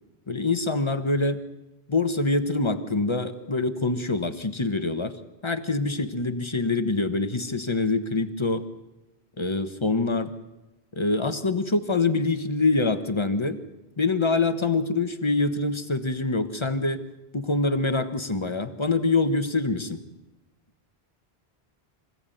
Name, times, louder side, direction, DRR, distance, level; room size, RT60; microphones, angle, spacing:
voice 1, 0.3-1.4 1.9-5.2 5.4-8.7 9.4-10.3 10.9-13.6 14.0-17.0 17.3-20.0, left 3 dB, 30° left, 10 dB, 1.3 m, -25 dB
26.0 x 16.5 x 9.2 m, 1.0 s
omnidirectional pair, 1.1 m